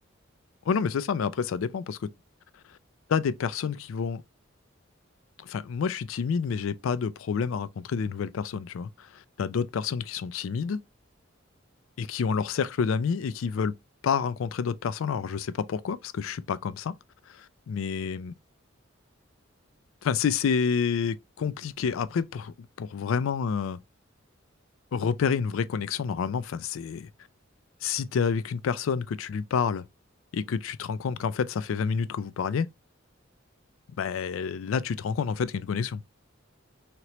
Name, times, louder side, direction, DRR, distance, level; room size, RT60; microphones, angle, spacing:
voice 1, 0.7-2.1 3.1-4.2 5.4-10.8 12.0-13.7 14.0-16.9 17.3-18.3 20.0-23.8 24.9-27.1 27.8-29.8 30.3-32.7 34.0-36.0, left 6 dB, 80° left, 0.4 m, -29 dB
3.0 x 2.9 x 2.9 m
head